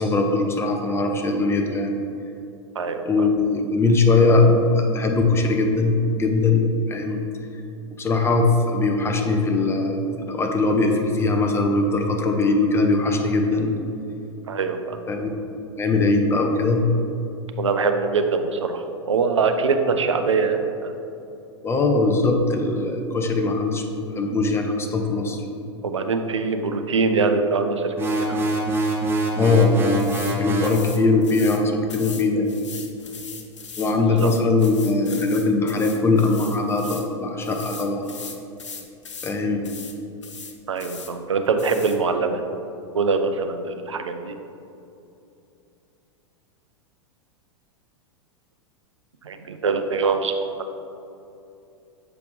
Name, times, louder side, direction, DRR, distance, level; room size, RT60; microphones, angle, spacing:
voice 1, 0.0-2.0 3.0-7.2 8.0-10.0 10.3-13.7 15.1-15.3 15.8-16.9 21.6-23.9 24.1-25.4 29.4-32.5 33.8-38.1 39.2-39.6, left 3 dB, 15° left, 3 dB, 0.7 m, -21 dB
voice 2, 2.7-3.3 14.5-15.0 17.6-21.0 25.8-28.4 33.9-34.3 40.7-42.4 42.9-44.3 49.2-50.5, right 4 dB, 85° right, 6 dB, 0.5 m, -23 dB
sound 1, 28.0-30.8, right 1 dB, 15° right, 0.9 m, -24 dB
sound 2, 30.0-30.4 30.6-31.6 31.9-37.1 37.4-39.4 39.6-40.0 40.2-41.1 41.6-42.0, left 5 dB, 85° left, 0.7 m, -39 dB
7.0 x 4.9 x 3.2 m, 2.7 s
hypercardioid pair, 95°, 15 cm